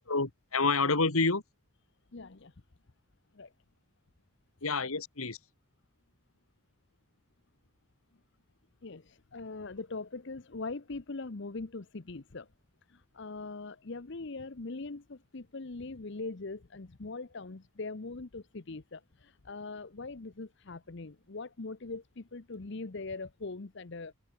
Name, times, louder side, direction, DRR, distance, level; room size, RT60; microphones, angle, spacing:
voice 1, 0.1-1.4 4.6-5.4, left 3 dB, 85° left, 2.5 m, -28 dB
voice 2, 2.1-2.5 3.3-3.5 8.8-12.5 12.9-24.1, left 3 dB, 55° left, 0.8 m, -41 dB
head